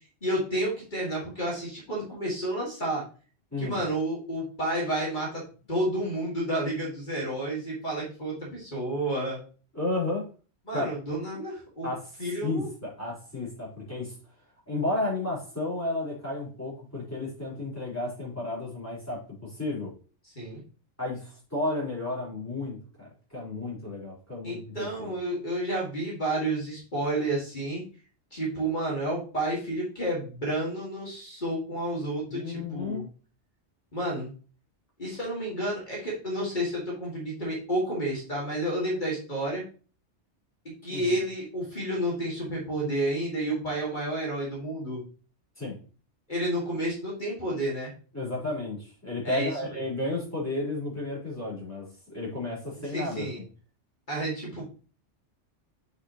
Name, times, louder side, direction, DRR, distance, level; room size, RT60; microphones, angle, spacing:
voice 1, 0.2-3.0 3.6-5.4 5.7-9.4 10.7-11.9 12.2-12.7 20.2-20.6 24.4-27.8 28.3-33.0 33.9-34.3 35.0-39.6 40.6-45.0 46.3-47.9 49.2-49.5 52.9-53.4 54.1-54.7, right 1 dB, 40° left, -4 dB, 2.4 m, -30 dB
voice 2, 9.7-10.2 10.7-10.9 11.8-14.1 14.7-19.9 21.0-25.1 32.3-33.0 40.9-41.2 45.6-45.8 48.1-53.5, left 2 dB, 15° left, -6 dB, 4.1 m, -33 dB
8.0 x 5.5 x 3.0 m, 0.37 s
omnidirectional pair, 1.2 m